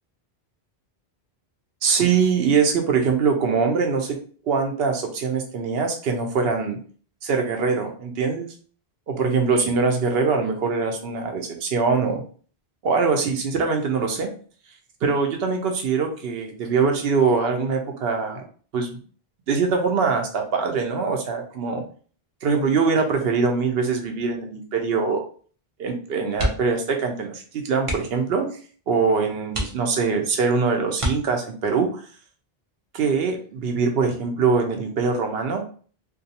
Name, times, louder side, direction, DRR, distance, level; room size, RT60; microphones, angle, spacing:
voice 1, 1.8-4.2 4.4-6.8 7.2-8.5 9.1-12.2 12.8-14.3 15.0-18.4 18.7-19.0 19.5-21.8 22.4-25.2 25.8-28.5 28.9-32.0 32.9-35.6, right 5 dB, 75° right, 3 dB, 0.8 m, -23 dB
sound 1, 26.3-26.9 27.1-27.3 27.8-28.3 28.9-29.0 29.5-30.2 30.9-31.7 33.3-33.6 34.0-34.1, equal, 40° right, 0.6 m, -29 dB
2.4 x 2.2 x 2.7 m, 0.42 s
omnidirectional pair, 1.0 m